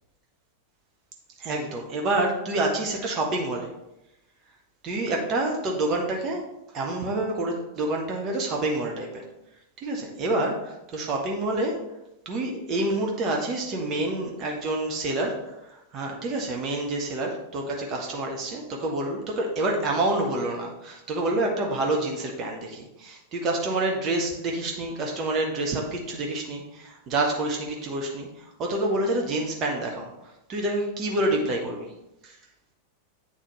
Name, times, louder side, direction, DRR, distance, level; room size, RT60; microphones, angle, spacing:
voice 1, 1.4-3.7 4.8-6.4 6.7-9.2 9.8-11.9 12.2-30.1 30.5-31.9 32.2-32.3, right 2 dB, 35° right, 0 dB, 1.0 m, -28 dB
8.9 x 4.2 x 3.1 m, 0.90 s
figure-of-eight pair, 90°, 0 cm